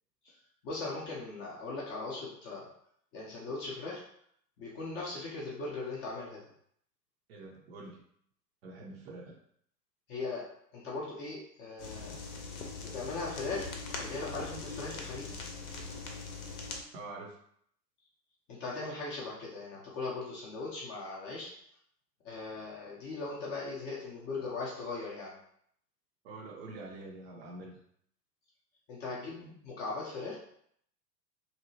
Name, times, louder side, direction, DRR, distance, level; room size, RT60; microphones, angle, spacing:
voice 1, 0.6-2.7 3.1-4.0 4.6-6.4 10.1-10.4 10.7-12.2 12.8-13.7 13.9-15.4 18.5-21.5 22.2-25.4 28.9-30.3, left 3 dB, 25° left, -5 dB, 0.5 m, -39 dB
voice 2, 7.3-8.0 8.6-9.4 16.9-17.4 26.2-27.8, right 2 dB, 40° right, 0 dB, 0.5 m, -45 dB
sound 1, 11.8-16.8, left 4 dB, 60° left, 0.7 m, -41 dB
2.8 x 2.0 x 2.7 m, 0.67 s
figure-of-eight pair, 95°, 50 cm